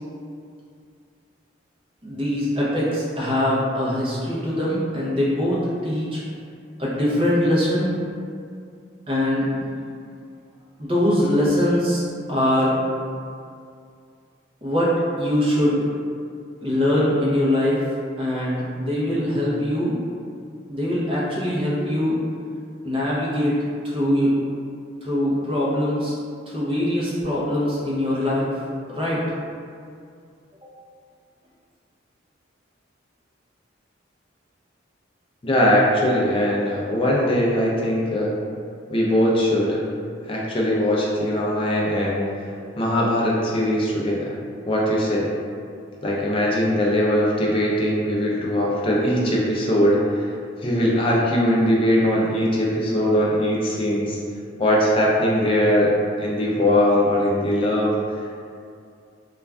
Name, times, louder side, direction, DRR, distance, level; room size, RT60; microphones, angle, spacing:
voice 1, 2.0-6.2 6.8-7.9 9.1-9.6 10.8-12.0 12.3-12.8 14.6-14.9 15.2-15.8 16.6-17.8 18.2-20.0 20.7-22.2 22.8-24.3 25.0-26.1 26.5-28.5 28.9-29.2 30.6-30.7, left 1 dB, 30° right, -7 dB, 0.6 m, -22 dB
voice 2, 35.4-38.3 38.9-39.8 40.2-42.3 42.8-44.3 44.7-45.3 46.0-50.3 50.6-54.2 54.6-57.9, equal, 25° left, -4 dB, 0.4 m, -20 dB
2.4 x 2.2 x 3.3 m, 2.3 s
head